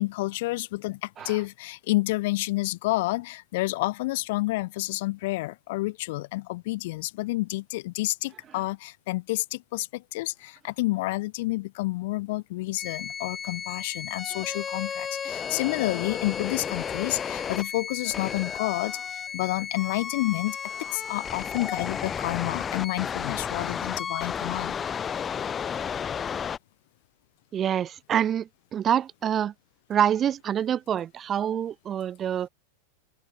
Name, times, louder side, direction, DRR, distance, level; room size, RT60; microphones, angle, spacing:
voice 1, 0.0-20.6 20.9-24.7, left 20 dB, 50° left, 0.6 m, -29 dB
sound 1, 12.8-26.6, left 7 dB, 20° left, 1.4 m, -33 dB
voice 2, 27.5-29.5 29.9-32.5, right 9 dB, 25° right, 0.6 m, -26 dB
figure-of-eight pair, 90°, 0 cm